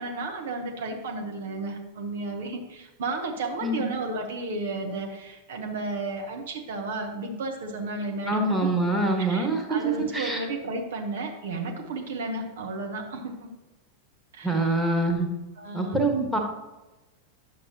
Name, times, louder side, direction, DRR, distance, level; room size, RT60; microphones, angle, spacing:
voice 1, 0.0-8.7 9.2-13.5 14.3-14.5 15.6-16.0, right 3 dB, 60° right, 3 dB, 1.0 m, -33 dB
voice 2, 8.3-10.4 14.4-15.3 15.7-16.4, right 2 dB, ahead, 1 dB, 1.4 m, -25 dB
10.0 x 7.1 x 2.9 m, 1.1 s
figure-of-eight pair, 90°, 0 cm